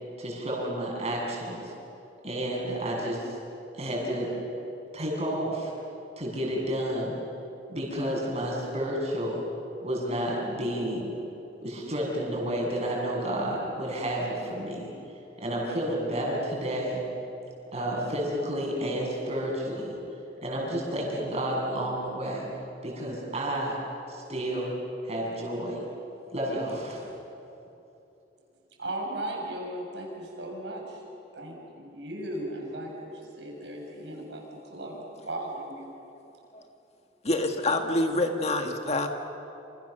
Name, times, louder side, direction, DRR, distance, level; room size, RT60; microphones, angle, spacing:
voice 1, 0.2-1.7 2.2-3.4 3.7-4.3 4.9-5.7 6.2-7.1 7.7-9.4 9.8-11.1 11.6-14.9 15.4-17.0 17.7-19.9 20.4-22.5 22.8-23.8 24.1-24.7 25.0-25.8 26.3-27.0, right 1 dB, 35° right, -2 dB, 7.6 m, -30 dB
voice 2, 28.8-31.0 31.3-35.9, right 1 dB, 75° right, 0 dB, 6.5 m, -37 dB
voice 3, 37.2-39.1, left 2 dB, 35° left, 4 dB, 1.8 m, -26 dB
28.5 x 28.0 x 6.8 m, 2.9 s
head